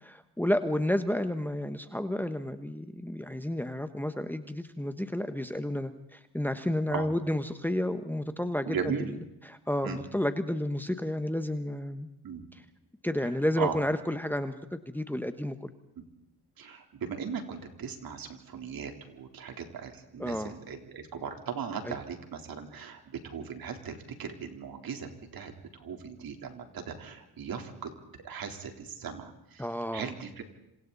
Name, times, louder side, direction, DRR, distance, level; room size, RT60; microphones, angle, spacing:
voice 1, 0.0-9.2 9.4-12.1 12.5-12.6 13.0-15.7 20.2-20.5 21.8-22.0 29.6-30.1, left 1 dB, 5° left, 9 dB, 1.3 m, -31 dB
voice 2, 8.7-9.1 9.8-10.0 12.2-12.4 13.6-13.8 16.0-16.1 16.6-27.9 28.2-29.7 29.9-30.4, right 6 dB, 55° right, 4 dB, 3.9 m, -38 dB
27.5 x 27.0 x 4.2 m, 0.88 s
cardioid pair, 90°, 41 cm